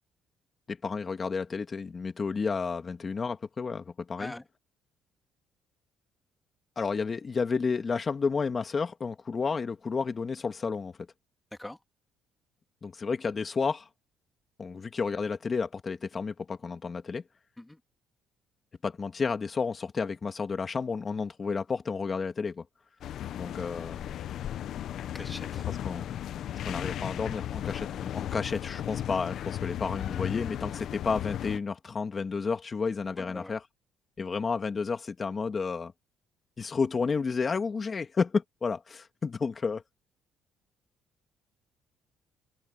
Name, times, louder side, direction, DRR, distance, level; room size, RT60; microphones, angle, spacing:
voice 1, 0.7-4.3 6.8-10.9 12.8-13.9 14.6-17.2 18.8-22.6 23.4-24.1 25.7-26.2 26.6-33.6 34.2-35.9 36.6-39.8, left 5 dB, 30° left, 2.0 m, -31 dB
sound 1, 23.0-31.6, left 11 dB, 60° left, 0.9 m, -35 dB
voice 2, 25.1-25.6 33.2-33.5, left 1 dB, 10° left, 2.9 m, -41 dB
cardioid pair, 125°, 0 cm